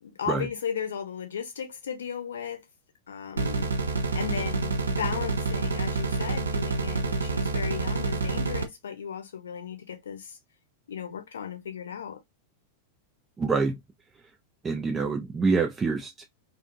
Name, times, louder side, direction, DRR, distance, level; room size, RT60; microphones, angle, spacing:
voice 1, 0.0-2.6 3.1-3.7 4.1-10.4 10.9-12.2, left 8 dB, 65° left, 0.6 m, -35 dB
sound 1, 3.4-8.6, right 3 dB, 75° right, 0.5 m, -28 dB
voice 2, 13.4-13.8 14.1-14.3 14.6-16.2, right 4 dB, 20° right, 0.4 m, -26 dB
2.5 x 2.5 x 2.5 m
figure-of-eight pair, 90°, 0 cm